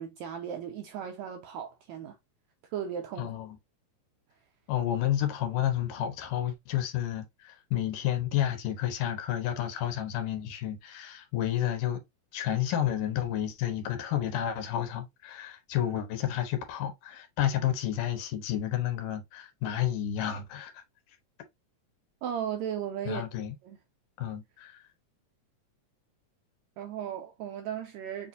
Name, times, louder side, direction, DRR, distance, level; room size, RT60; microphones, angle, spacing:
voice 1, 0.0-2.2 2.7-3.3 22.2-23.2 23.6-23.8 26.8-28.3, right 9 dB, 80° right, 1.6 m, -36 dB
voice 2, 3.2-3.6 4.7-12.0 12.3-20.8 23.1-23.6 24.2-24.8, left 11 dB, 85° left, 2.4 m, -31 dB
6.9 x 2.5 x 2.6 m
omnidirectional pair, 3.8 m